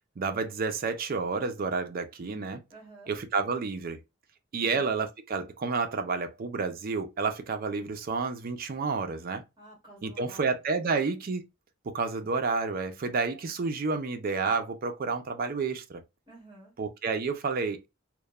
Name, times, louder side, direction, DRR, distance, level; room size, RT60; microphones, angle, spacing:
voice 1, 0.2-2.6 3.1-4.0 4.5-9.4 10.0-11.4 11.8-16.0 16.8-17.9, right 4 dB, 45° right, 0.4 m, -30 dB
voice 2, 2.7-3.2 9.6-10.6 16.3-16.7, right 2 dB, 25° right, 1.5 m, -51 dB
2.9 x 2.1 x 2.2 m
head